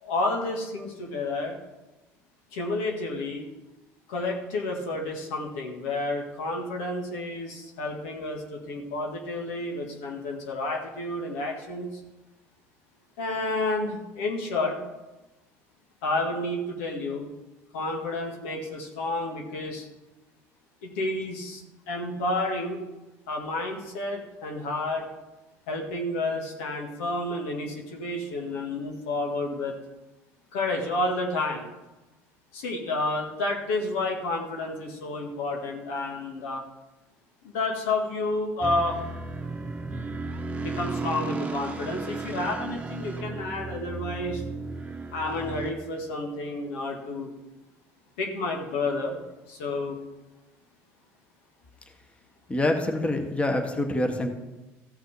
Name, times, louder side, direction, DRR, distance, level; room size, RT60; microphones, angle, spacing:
voice 1, 0.0-1.6 2.5-3.4 4.1-11.9 13.2-14.8 16.0-17.3 17.7-19.9 20.8-22.8 23.3-25.0 25.7-29.8 30.5-31.7 32.5-36.6 37.4-39.0 40.6-44.4 45.1-47.3 48.2-49.2 49.5-50.0, left 2 dB, 90° left, 1 dB, 1.9 m, -30 dB
sound 1, 38.6-45.7, right 3 dB, 20° right, 1.0 m, -34 dB
voice 2, 52.5-54.3, left 1 dB, 15° left, 4 dB, 1.5 m, -26 dB
14.5 x 6.0 x 4.9 m, 1.1 s
supercardioid pair, 85°, 7 cm